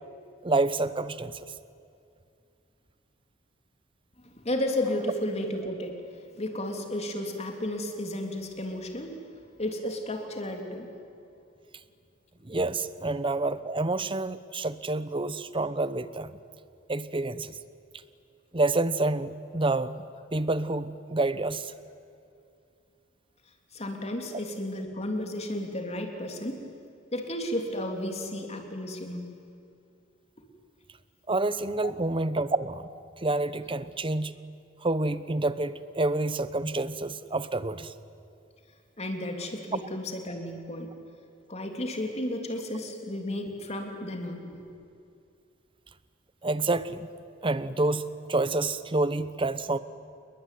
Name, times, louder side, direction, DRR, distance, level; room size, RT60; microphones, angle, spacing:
voice 1, 0.4-1.4 12.4-16.3 16.9-17.5 18.5-19.9 20.3-21.7 31.3-32.9 33.2-34.4 34.8-37.9 46.4-47.1 47.4-49.8, right 2 dB, 30° right, 14 dB, 1.0 m, -28 dB
voice 2, 4.2-6.0 6.4-9.2 9.6-10.9 23.7-26.6 27.1-29.3 31.8-31.9 39.0-40.9 41.5-44.6, left 1 dB, 35° left, 3 dB, 3.5 m, -33 dB
29.0 x 21.5 x 9.5 m, 2.5 s
head